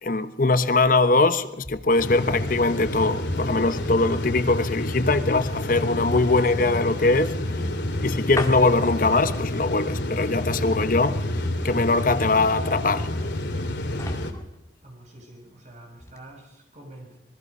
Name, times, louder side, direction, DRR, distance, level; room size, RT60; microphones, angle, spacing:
voice 1, 0.0-7.3 8.0-11.2 11.6-13.1, left 3 dB, 50° left, 1.1 m, -21 dB
sound 1, 1.6-15.6 16.0-16.2, left 2 dB, 20° left, 2.2 m, -41 dB
sound 2, 2.0-14.3, left 1 dB, 85° left, 2.6 m, -29 dB
voice 2, 14.8-17.2, right 1 dB, 40° right, 7.3 m, -46 dB
26.5 x 21.0 x 5.5 m
head